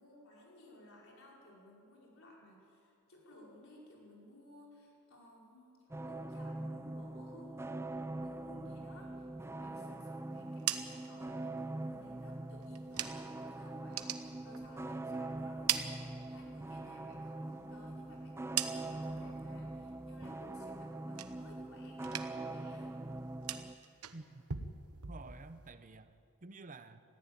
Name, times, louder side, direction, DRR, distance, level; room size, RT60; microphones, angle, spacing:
voice 1, 0.0-7.8 8.2-22.1 22.4-22.9, left 1 dB, 60° left, -3 dB, 5.2 m, -58 dB
sound 1, 5.9-23.7, right 2 dB, 10° right, 0.4 m, -43 dB
sound 2, 10.3-13.4 13.8-15.1 15.4-16.7 17.1-19.2 19.6-20.0 20.4-21.7 22.0-22.6 22.8-25.7, right 10 dB, 85° right, 1.1 m, -41 dB
voice 2, 24.1-24.6 25.1-26.2 26.4-27.0, right 3 dB, 35° right, 11 dB, 0.8 m, -51 dB
20.5 x 15.5 x 8.9 m, 2.5 s
head